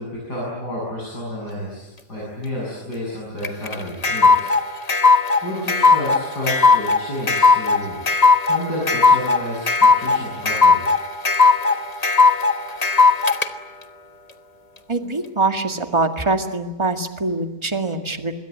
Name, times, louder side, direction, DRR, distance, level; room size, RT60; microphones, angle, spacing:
voice 1, 0.0-4.5 4.7-4.9 5.4-8.0 8.5-10.8, left 1 dB, 85° left, -5 dB, 8.1 m, -30 dB
sound 1, 3.4-13.5, left 4 dB, 25° left, 1.2 m, -16 dB
voice 2, 14.9-18.3, right 3 dB, 15° right, 6 dB, 1.9 m, -23 dB
26.5 x 22.0 x 9.3 m, 1.1 s
omnidirectional pair, 1.7 m